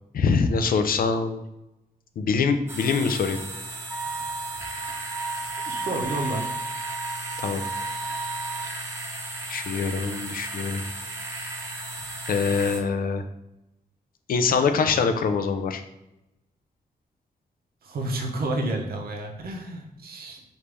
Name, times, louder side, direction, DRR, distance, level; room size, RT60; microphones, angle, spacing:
voice 1, 0.1-1.4 2.2-3.4 7.4-7.6 9.5-10.8 12.3-13.2 14.3-15.8, left 5 dB, 65° left, 8 dB, 0.5 m, -24 dB
sound 1, 2.7-12.8, right 2 dB, 15° right, 0.6 m, -35 dB
Wind instrument woodwind instrument, 3.9-8.7, right 4 dB, 5° left, 1.2 m, -34 dB
voice 2, 5.7-6.5 17.8-20.4, right 2 dB, 75° right, 2 dB, 0.8 m, -30 dB
5.1 x 2.6 x 3.3 m, 0.90 s
wide cardioid pair, 135°, 16 cm